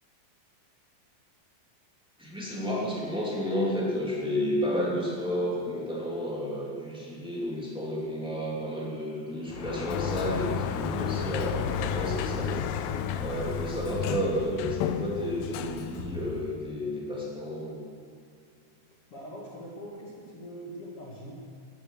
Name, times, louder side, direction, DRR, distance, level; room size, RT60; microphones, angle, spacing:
voice 1, 2.2-12.7 12.9-17.8, equal, ahead, -6 dB, 1.2 m, -31 dB
Sliding door, 9.5-16.6, left 7 dB, 85° left, 3.2 m, -32 dB
voice 2, 19.1-21.4, equal, 55° left, -3 dB, 1.5 m, -42 dB
17.5 x 10.0 x 6.6 m, 2.3 s
omnidirectional pair, 5.7 m